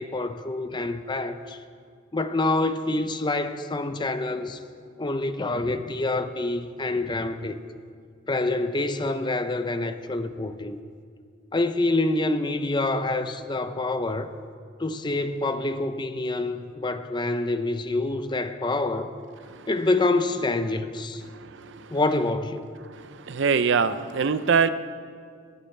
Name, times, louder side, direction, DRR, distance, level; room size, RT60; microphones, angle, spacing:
voice 1, 0.0-1.6 2.1-4.6 5.0-7.6 8.3-10.8 11.5-14.3 14.8-19.1 19.7-21.2 21.9-22.6, left 2 dB, 20° left, 0.6 m, -26 dB
voice 2, 23.3-24.7, right 5 dB, 60° right, 0.5 m, -22 dB
20.5 x 16.0 x 3.3 m
head